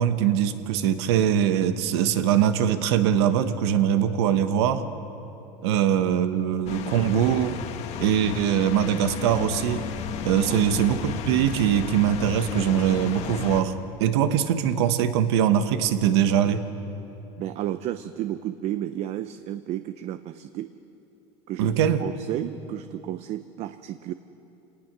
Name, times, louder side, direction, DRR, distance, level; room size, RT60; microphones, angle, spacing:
voice 1, 0.0-4.8 5.6-7.6 8.0-9.9 10.2-13.7 14.0-16.6 21.6-22.0, right 9 dB, 85° right, 10 dB, 1.3 m, -22 dB
sound 1, 6.7-13.6, left 8 dB, 55° left, 1.4 m, -33 dB
voice 2, 17.4-20.7 21.5-21.7 22.0-24.1, right 12 dB, 55° right, 11 dB, 0.7 m, -32 dB
27.5 x 19.0 x 6.1 m, 3.0 s
supercardioid pair, 115°, 13 cm